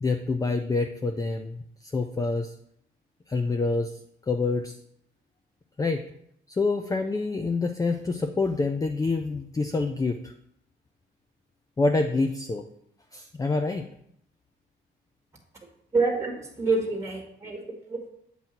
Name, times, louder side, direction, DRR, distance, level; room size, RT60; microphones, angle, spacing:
voice 1, 0.0-2.5 3.3-4.0 4.3-4.8 5.8-6.0 6.5-10.3 11.8-12.7 13.1-13.9, left 3 dB, 15° left, 5 dB, 0.4 m, -27 dB
voice 2, 15.9-18.1, right 3 dB, 15° right, 2 dB, 1.5 m, -27 dB
7.6 x 2.7 x 5.8 m, 0.72 s
cardioid pair, 90°, 20 cm